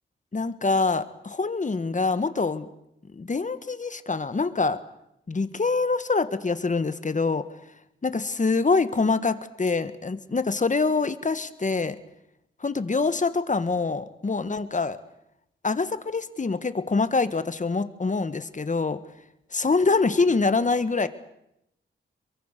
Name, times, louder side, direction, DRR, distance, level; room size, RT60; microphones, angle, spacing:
voice 1, 0.3-2.7 3.1-4.8 5.3-7.4 8.0-12.0 12.6-15.0 15.6-19.0 19.5-21.1, left 4 dB, 35° left, 12 dB, 1.6 m, -25 dB
27.0 x 23.0 x 6.8 m, 0.81 s
wide cardioid pair, 100°, 21 cm